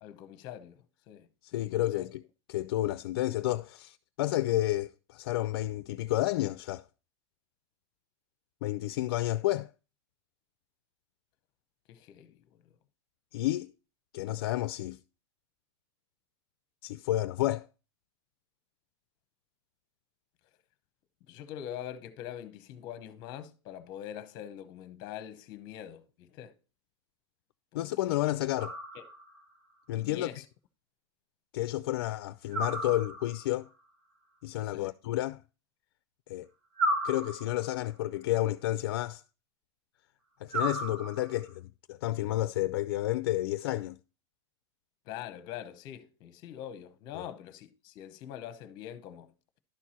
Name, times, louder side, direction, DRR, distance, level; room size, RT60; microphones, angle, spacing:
voice 1, 0.0-2.1 11.9-12.6 21.3-26.5 27.7-28.2 28.9-29.0 30.0-30.4 34.6-34.9 45.1-49.3, left 10 dB, 30° left, 0.8 m, -44 dB
voice 2, 1.4-2.2 2.5-6.8 8.6-9.7 13.3-13.7 14.1-15.0 16.8-17.7 27.7-28.8 29.9-30.3 31.5-33.7 34.4-35.4 36.3-36.5 37.0-39.2 40.4-44.0 47.1-47.2, left 15 dB, 55° left, 0.4 m, -31 dB
sound 1, 28.6-29.4 32.5-33.5 36.8-37.8 40.5-41.5, right 1 dB, 50° right, 2.4 m, -34 dB
11.5 x 4.6 x 4.2 m
supercardioid pair, 175°, 14 cm